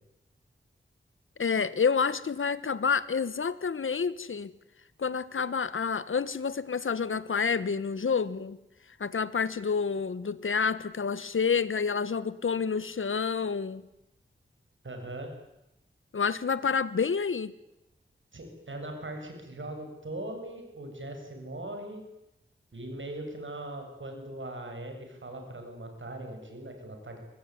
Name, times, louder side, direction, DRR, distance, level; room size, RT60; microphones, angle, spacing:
voice 1, 1.4-4.5 5.0-8.6 9.0-13.8 16.1-17.5, left 5 dB, 75° left, 16 dB, 1.3 m, -28 dB
voice 2, 14.8-15.3 18.3-22.0 22.7-27.2, right 1 dB, 65° right, 4 dB, 7.2 m, -40 dB
24.0 x 19.5 x 9.7 m, 0.89 s
wide cardioid pair, 65°, 21 cm